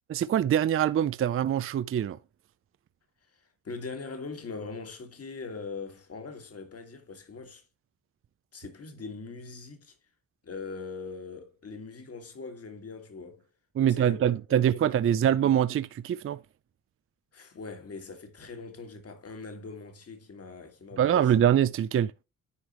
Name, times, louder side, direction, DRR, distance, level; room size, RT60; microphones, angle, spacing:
voice 1, 0.1-2.2 13.8-16.4 21.0-22.1, right 10 dB, 40° right, 0.4 m, -24 dB
voice 2, 3.3-7.6 8.5-10.0 10.4-13.5 13.8-14.2 14.5-15.2 17.3-21.3, left 4 dB, 45° left, 1.9 m, -41 dB
9.6 x 4.9 x 3.0 m
cardioid pair, 100°, 34 cm